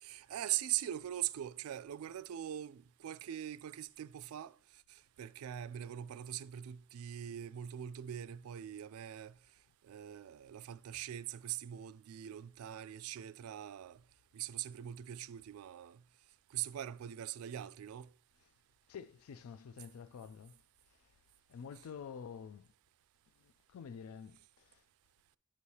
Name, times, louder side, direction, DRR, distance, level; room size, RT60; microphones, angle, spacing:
voice 1, 0.0-4.6 4.9-9.4 9.8-14.0 14.3-16.0 16.5-18.1, right 11 dB, 80° right, 0.3 m, -42 dB
voice 2, 18.9-20.6 21.0-21.1 21.5-22.7 23.4-24.8, left 6 dB, 80° left, 0.4 m, -49 dB
8.9 x 6.3 x 2.8 m
head